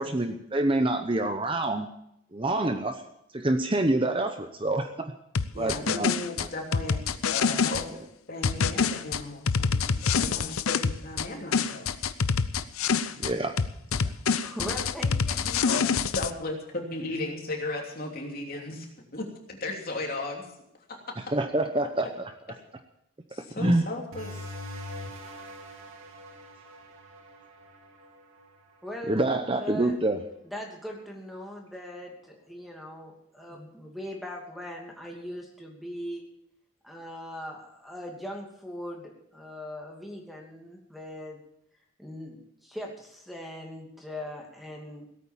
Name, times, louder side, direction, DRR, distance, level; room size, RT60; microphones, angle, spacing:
voice 1, 0.0-1.9 2.3-2.9 3.3-4.9 5.6-6.1 10.3-10.4 13.2-13.5 14.0-14.1 21.3-22.3 23.6-23.9 29.1-30.2, right 2 dB, 25° right, 6 dB, 0.8 m, -26 dB
sound 1, 5.3-7.8 8.4-11.3 11.5-13.3 13.6-16.3, left 5 dB, 90° left, 0.7 m, -26 dB
voice 2, 5.5-7.0 7.3-7.9 8.3-12.1 15.6-15.8 16.1-18.9 19.1-20.5 20.9-21.1 23.3-24.4, left 2 dB, 45° left, 1 dB, 3.0 m, -36 dB
voice 3, 14.4-15.8 28.8-29.2 29.6-30.0 30.4-36.2 36.8-41.4 42.0-45.0, equal, ahead, 0 dB, 2.6 m, -40 dB
sound 2, 24.1-29.3, left 1 dB, 75° right, 2.6 m, -43 dB
17.5 x 8.9 x 7.3 m, 0.76 s
head